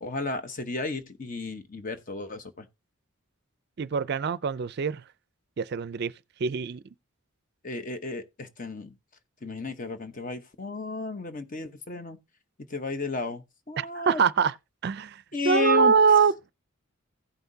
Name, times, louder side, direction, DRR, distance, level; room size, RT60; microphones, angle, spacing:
voice 1, 0.0-2.7 7.6-8.9 9.4-12.2 12.7-14.2 15.3-15.9, left 3 dB, 40° left, 1.0 m, -33 dB
voice 2, 3.8-5.0 5.6-6.1 6.4-6.8 13.8-14.5 14.8-16.5, right 6 dB, 50° right, 0.4 m, -24 dB
16.0 x 5.7 x 2.7 m
head